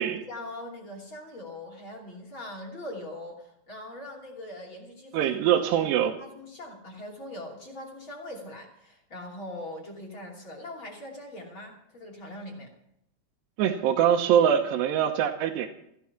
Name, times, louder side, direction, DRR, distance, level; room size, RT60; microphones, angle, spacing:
voice 1, 0.0-5.5 6.2-12.7, left 1 dB, 30° left, -1 dB, 3.0 m, -41 dB
voice 2, 5.1-6.1 13.6-15.7, right 9 dB, 80° right, 2 dB, 3.0 m, -23 dB
15.5 x 12.5 x 5.9 m, 0.76 s
omnidirectional pair, 5.0 m